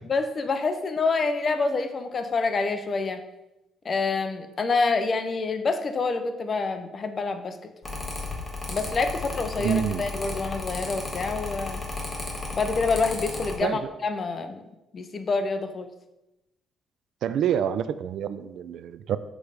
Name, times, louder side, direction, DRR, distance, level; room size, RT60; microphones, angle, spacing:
voice 1, 0.1-3.2 3.8-7.7 8.7-11.8 12.5-14.6 14.9-15.9, left 4 dB, 40° left, 8 dB, 0.6 m, -27 dB
Mechanical fan, 7.8-13.6, left 3 dB, 25° left, 1.4 m, -34 dB
voice 2, 9.6-10.0 13.6-13.8 17.2-19.2, right 9 dB, 70° right, 14 dB, 0.3 m, -27 dB
6.2 x 3.3 x 5.0 m, 0.96 s
cardioid pair, 105°, 0 cm